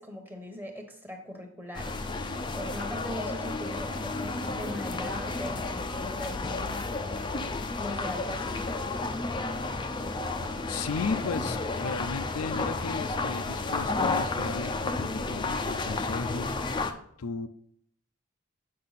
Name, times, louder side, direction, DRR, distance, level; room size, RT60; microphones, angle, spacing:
voice 1, 0.0-7.2 7.8-8.7, left 1 dB, 10° right, 3 dB, 1.0 m, -40 dB
sound 1, 1.7-16.9, left 3 dB, 20° left, 0.4 m, -32 dB
voice 2, 10.4-16.9 17.2-17.5, left 4 dB, 85° left, 10 dB, 0.5 m, -35 dB
8.6 x 5.4 x 4.1 m, 0.71 s
head